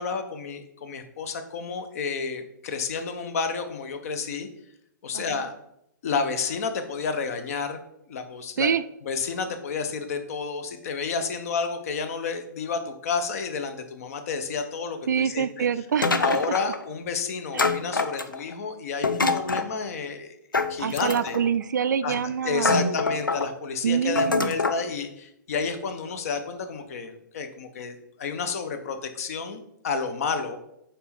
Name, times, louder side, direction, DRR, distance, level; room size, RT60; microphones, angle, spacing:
voice 1, 0.0-4.5 5.0-5.5 6.0-7.8 8.1-8.7 9.0-15.7 16.2-20.4 20.7-21.4 22.0-22.1 22.4-30.6, left 5 dB, 45° left, 8 dB, 0.8 m, -30 dB
voice 2, 15.1-16.1 17.5-17.7 20.8-23.0 23.8-24.5, right 7 dB, 60° right, 14 dB, 0.3 m, -26 dB
sound 1, 16.0-16.8 17.6-18.5 19.0-19.7 20.5-21.5 22.1-22.2 22.6-23.5 24.2-24.8, left 3 dB, 80° left, 0.5 m, -25 dB
5.4 x 4.2 x 4.2 m, 0.78 s
figure-of-eight pair, 120°, 11 cm